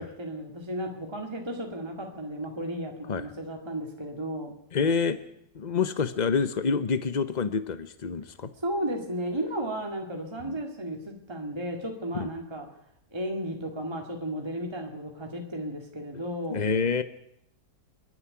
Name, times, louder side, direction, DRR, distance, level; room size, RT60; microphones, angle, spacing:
voice 1, 0.0-4.5 8.6-12.7 13.1-16.6, right 1 dB, 15° right, 2 dB, 2.3 m, -34 dB
voice 2, 4.7-5.2 5.5-8.5 10.4-10.5 12.2-12.3 16.5-17.0, left 5 dB, 50° left, 11 dB, 0.5 m, -27 dB
27.5 x 11.0 x 9.8 m, 0.79 s
omnidirectional pair, 2.0 m